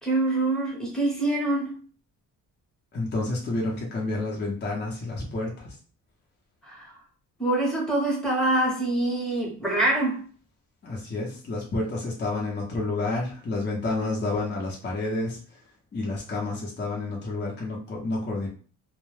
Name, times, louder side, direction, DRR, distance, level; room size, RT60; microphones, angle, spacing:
voice 1, 0.0-1.8 6.6-6.9 7.4-10.2, right 2 dB, ahead, -3 dB, 0.9 m, -25 dB
voice 2, 2.9-5.7 10.8-15.4 15.9-18.5, left 2 dB, 30° left, -3 dB, 0.7 m, -29 dB
2.2 x 2.1 x 3.2 m, 0.39 s
cardioid pair, 125°, 35 cm